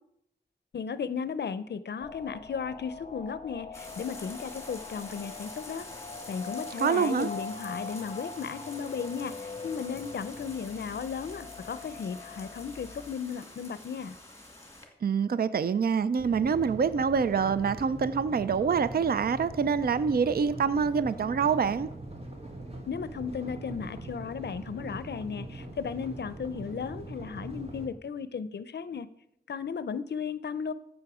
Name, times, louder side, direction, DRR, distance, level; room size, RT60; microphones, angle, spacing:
voice 1, 0.7-5.9 6.3-14.2 22.9-29.1 29.5-30.7, left 6 dB, 80° left, 15 dB, 0.5 m, -35 dB
sound 1, 2.0-13.2, left 4 dB, 30° left, 0.8 m, -43 dB
sound 2, 3.7-14.9, left 1 dB, 15° left, 2.3 m, -47 dB
voice 2, 6.8-7.3 15.0-21.9, right 6 dB, 60° right, 15 dB, 0.4 m, -26 dB
sound 3, 16.2-27.9, right 1 dB, 35° right, 1.7 m, -42 dB
14.0 x 6.3 x 4.8 m, 0.76 s
wide cardioid pair, 90°, 17 cm